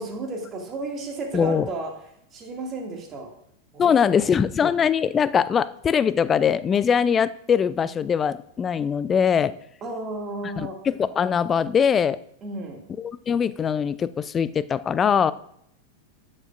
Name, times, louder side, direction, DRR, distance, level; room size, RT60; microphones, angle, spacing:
voice 1, 0.0-1.9 2.3-3.3 3.7-4.3 9.8-10.8 12.4-12.8, right 2 dB, 25° right, 2 dB, 2.1 m, -33 dB
voice 2, 1.3-1.7 3.8-9.5 10.8-12.2 13.0-15.3, left 7 dB, 20° left, 17 dB, 0.4 m, -22 dB
12.5 x 8.8 x 2.5 m, 0.72 s
figure-of-eight pair, 90°, 0 cm